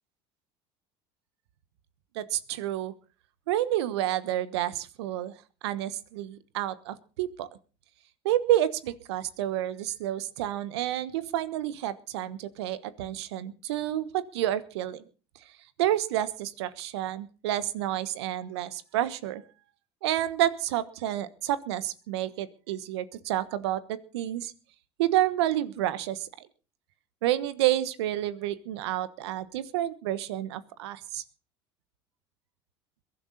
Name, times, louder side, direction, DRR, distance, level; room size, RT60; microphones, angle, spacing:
voice 1, 2.1-2.9 3.5-5.3 5.6-7.5 8.2-15.0 15.8-19.4 20.0-24.5 25.0-26.5 27.2-31.2, right 13 dB, 80° right, 15 dB, 1.3 m, -29 dB
22.0 x 11.5 x 4.1 m, 0.36 s
hypercardioid pair, 80°, 14 cm